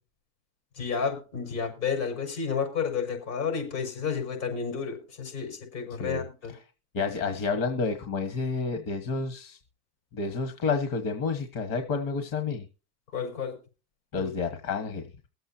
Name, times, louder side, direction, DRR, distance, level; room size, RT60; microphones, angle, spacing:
voice 1, 0.8-6.5 13.1-13.6 14.2-14.3, left 6 dB, 85° left, 5.9 m, -31 dB
voice 2, 5.9-6.6 6.9-9.6 10.1-12.7 14.1-15.1, left 4 dB, 65° left, 1.7 m, -30 dB
23.0 x 7.9 x 2.8 m
supercardioid pair, 90°, 37 cm